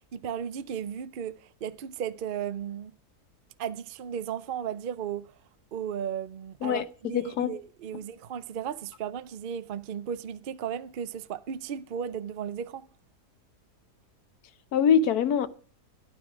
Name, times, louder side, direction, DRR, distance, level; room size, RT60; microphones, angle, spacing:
voice 1, 0.0-2.9 3.6-5.3 5.7-12.9, right 8 dB, 55° right, 0.6 m, -35 dB
voice 2, 7.1-7.5 14.7-15.5, left 7 dB, 70° left, 1.3 m, -23 dB
13.0 x 12.0 x 5.0 m
omnidirectional pair, 1.7 m